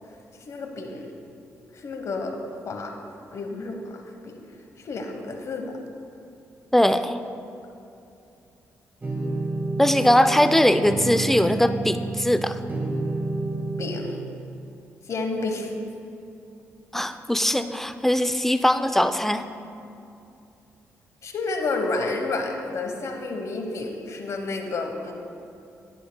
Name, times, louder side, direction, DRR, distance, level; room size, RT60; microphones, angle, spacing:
voice 1, 0.5-1.1 1.7-2.9 3.3-4.4 4.8-5.8 13.8-14.2 15.1-15.7 21.2-25.1, left 3 dB, 60° left, 4 dB, 1.1 m, -30 dB
voice 2, 6.7-7.2 9.8-12.6 16.9-19.5, left 1 dB, 5° left, 10 dB, 0.4 m, -21 dB
sound 1, 9.0-14.0, right 2 dB, 30° right, 1.7 m, -29 dB
10.5 x 10.5 x 2.3 m, 2.7 s
supercardioid pair, 60°, 6 cm